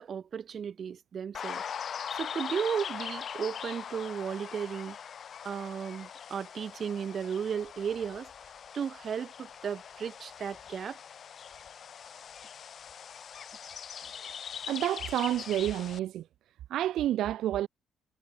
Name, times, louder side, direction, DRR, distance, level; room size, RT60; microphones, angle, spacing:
voice 1, 0.0-1.6 2.1-5.0 5.4-8.3 8.7-11.0, right 7 dB, 45° right, 3.0 m, -35 dB
sound 1, 1.3-16.0, left 8 dB, 50° left, 2.3 m, -41 dB
voice 2, 14.7-16.3 16.7-17.7, right 12 dB, 70° right, 1.1 m, -29 dB
cardioid pair, 110°, 0 cm